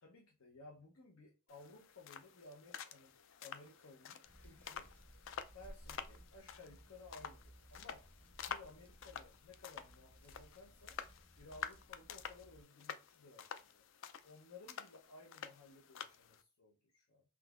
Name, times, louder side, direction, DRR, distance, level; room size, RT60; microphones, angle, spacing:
voice 1, 0.0-3.1 3.4-4.9 5.5-8.0 8.5-11.0 11.4-13.8 14.2-17.2, left 3 dB, 90° left, -1 dB, 0.7 m, -58 dB
sound 1, 1.5-16.4, left 8 dB, 65° left, 0.3 m, -50 dB
Hands, 4.2-12.6, equal, 5° left, 0.5 m, -60 dB
3.9 x 2.7 x 2.4 m, 0.33 s
head